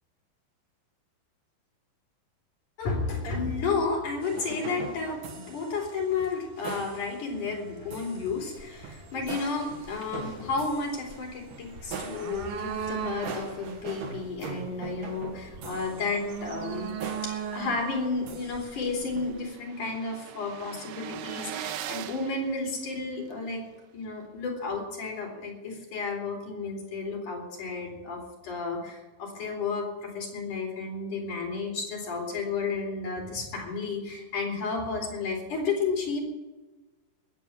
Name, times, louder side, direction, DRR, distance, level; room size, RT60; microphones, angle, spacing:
voice 1, 2.8-16.9 17.2-23.6 23.9-36.2, left 4 dB, 60° left, 0 dB, 5.2 m, -32 dB
sound 1, 4.2-19.3, right 5 dB, 70° right, 3.2 m, -42 dB
sound 2, 8.6-19.4, right 7 dB, 50° right, 2.5 m, -40 dB
sound 3, 18.2-18.3 18.4-23.3, right 11 dB, 90° right, 2.6 m, -41 dB
19.5 x 8.1 x 8.9 m, 1.1 s
omnidirectional pair, 4.1 m